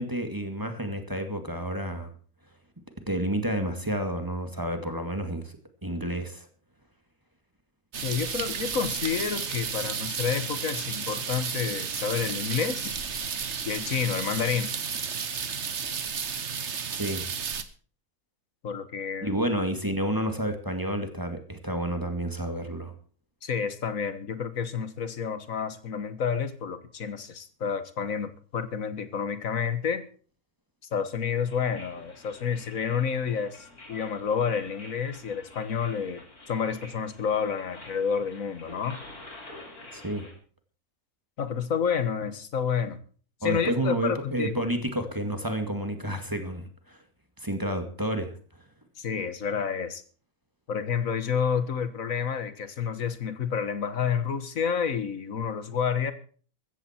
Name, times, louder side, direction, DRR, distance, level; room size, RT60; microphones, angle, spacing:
voice 1, 0.0-2.1 3.1-5.5 5.8-6.5 16.9-17.3 19.2-22.9 39.9-40.3 43.4-47.0 47.4-48.3, right 1 dB, 15° right, 6 dB, 2.1 m, -30 dB
sound 1, 7.9-17.6, right 6 dB, 50° right, 1.5 m, -32 dB
voice 2, 8.0-13.0 13.6-14.7 18.6-19.3 23.4-30.1 30.9-39.0 41.4-43.0 43.4-44.6 49.0-50.0 50.7-56.1, left 7 dB, 65° left, 12 dB, 1.8 m, -29 dB
sound 2, 31.5-40.3, left 2 dB, 80° left, 4.4 m, -48 dB
15.5 x 14.5 x 4.5 m, 0.42 s
omnidirectional pair, 1.6 m